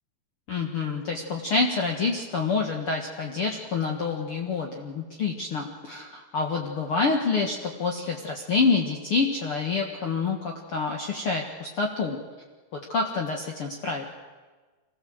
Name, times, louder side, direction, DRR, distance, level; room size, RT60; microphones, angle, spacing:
voice 1, 0.5-12.2 12.9-14.0, left 4 dB, 50° left, 1 dB, 2.0 m, -27 dB
25.0 x 17.0 x 7.9 m, 1.3 s
omnidirectional pair, 4.1 m